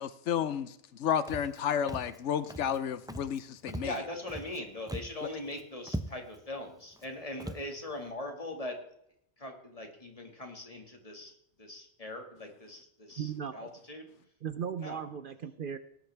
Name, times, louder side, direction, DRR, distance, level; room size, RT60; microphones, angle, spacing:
voice 1, 0.0-3.9, left 8 dB, 85° left, 14 dB, 1.0 m, -32 dB
Walk footsteps, 1.3-1.6 1.9-2.2 2.5-2.8 3.1-3.4 3.7-4.6 4.9-5.2 5.5-5.6 5.9-6.4 6.9-7.1 7.4-7.7, right 1 dB, 5° right, 0.4 m, -40 dB
voice 2, 3.8-8.8 9.4-11.3 11.6-14.1 14.8-15.0, left 1 dB, 30° left, 3 dB, 2.1 m, -41 dB
voice 3, 13.2-13.7 14.4-15.8, right 8 dB, 55° right, 11 dB, 0.7 m, -37 dB
18.5 x 9.0 x 3.4 m, 0.73 s
omnidirectional pair, 1.2 m